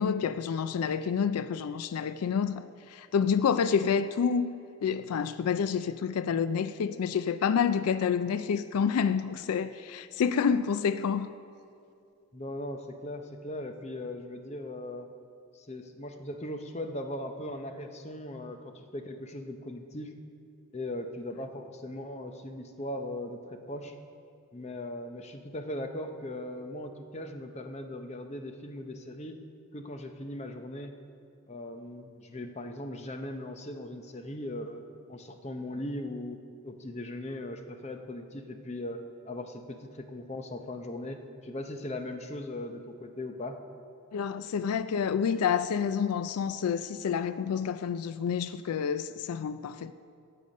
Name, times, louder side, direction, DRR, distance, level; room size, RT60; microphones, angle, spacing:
voice 1, 0.0-11.3 44.1-49.9, left 6 dB, 85° left, 0.4 m, -28 dB
voice 2, 12.3-15.1 15.5-20.1 20.7-23.9 24.5-29.4 29.7-30.9 31.5-36.4 36.6-43.6, left 1 dB, 30° left, 0.7 m, -39 dB
17.5 x 6.8 x 5.3 m
head